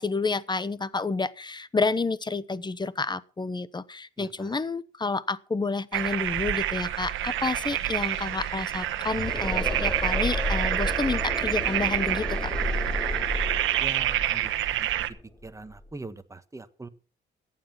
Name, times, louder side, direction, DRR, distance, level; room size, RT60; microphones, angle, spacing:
voice 1, 0.0-12.5, left 4 dB, 20° left, 1.0 m, -29 dB
voice 2, 4.2-4.6 13.8-15.2 15.4-16.9, right 3 dB, 15° right, 1.4 m, -42 dB
sound 1, 5.9-15.1, right 13 dB, 80° right, 1.2 m, -28 dB
sound 2, 6.8-6.9 7.1-15.9, left 1 dB, 5° left, 2.5 m, -33 dB
14.5 x 9.4 x 5.8 m
cardioid pair, 90°, 20 cm